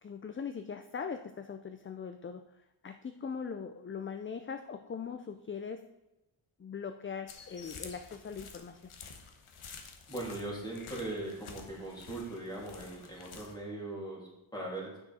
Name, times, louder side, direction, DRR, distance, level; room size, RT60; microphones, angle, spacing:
voice 1, 0.0-2.4 2.8-5.9 6.6-8.9, left 6 dB, 30° left, 8 dB, 0.3 m, -40 dB
sound 1, 7.3-13.5, left 5 dB, 85° left, 1.2 m, -50 dB
voice 2, 10.1-14.9, right 2 dB, 10° left, -5 dB, 3.0 m, -40 dB
9.1 x 6.2 x 4.2 m, 0.99 s
wide cardioid pair, 150°, 49 cm